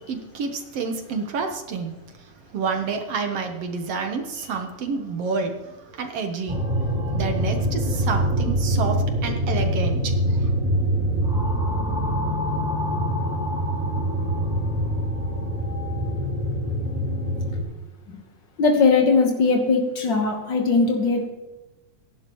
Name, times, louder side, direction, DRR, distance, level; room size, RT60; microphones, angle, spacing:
voice 1, 0.1-1.9 2.5-5.6 5.9-6.6 7.1-9.0 9.2-10.1, right 5 dB, 65° right, 5 dB, 1.5 m, -28 dB
sound 1, 6.5-17.6, equal, 10° right, 4.2 m, -24 dB
voice 2, 18.6-21.3, left 4 dB, 75° left, 2 dB, 1.0 m, -20 dB
22.5 x 11.0 x 3.1 m, 1.1 s
omnidirectional pair, 4.0 m